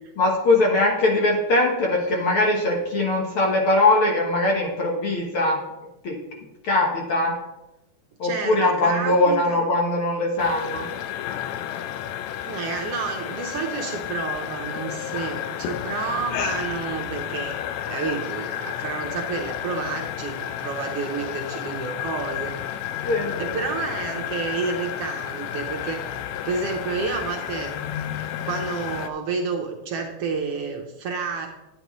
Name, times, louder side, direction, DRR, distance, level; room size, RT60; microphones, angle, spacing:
voice 1, 0.2-5.6 6.0-6.2 6.6-7.3 8.2-10.8 23.0-23.3, left 2 dB, 60° left, -1 dB, 1.5 m, -21 dB
voice 2, 8.2-9.6 12.4-17.6 17.9-22.5 23.4-26.1 26.4-27.7 28.4-31.5, right 5 dB, 70° right, 2 dB, 1.5 m, -30 dB
sound 1, 10.4-29.1, left 11 dB, 80° left, 1.7 m, -31 dB
9.7 x 9.6 x 3.0 m, 0.98 s
omnidirectional pair, 3.5 m